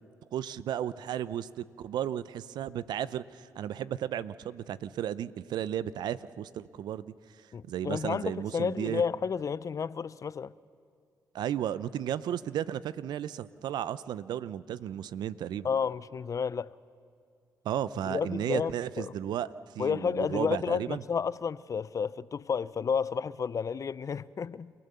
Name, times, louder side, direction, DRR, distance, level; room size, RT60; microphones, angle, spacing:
voice 1, 0.3-7.1 7.6-9.0 11.3-15.7 17.6-19.5 19.7-21.0, right 10 dB, 75° right, 0.6 m, -34 dB
voice 2, 7.5-10.5 15.6-16.7 18.1-19.1 19.8-24.7, left 6 dB, 50° left, 0.5 m, -31 dB
29.5 x 16.0 x 6.9 m
supercardioid pair, 55°, 7 cm